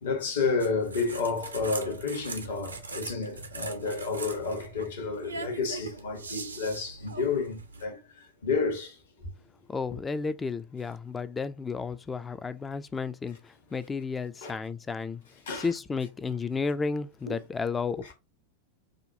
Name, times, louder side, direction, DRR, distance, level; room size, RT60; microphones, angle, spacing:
voice 1, 0.0-8.0 8.4-8.9 14.4-14.6 15.5-15.7 17.3-17.4, left 4 dB, 60° left, 1.1 m, -30 dB
sound 1, 0.6-7.8, right 4 dB, 75° right, 0.6 m, -41 dB
voice 2, 9.7-15.2 15.5-18.1, left 4 dB, 15° left, 0.3 m, -32 dB
4.9 x 2.2 x 2.6 m
figure-of-eight pair, 90°, 0 cm